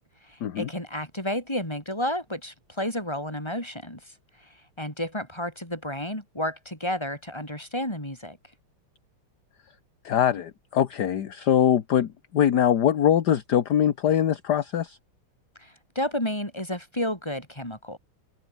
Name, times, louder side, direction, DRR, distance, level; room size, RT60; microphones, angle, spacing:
voice 1, 0.2-4.0 4.8-8.4 15.6-18.0, left 1 dB, 10° left, 7.4 m, -31 dB
voice 2, 10.0-15.0, left 9 dB, 55° left, 1.6 m, -23 dB
omnidirectional pair, 2.4 m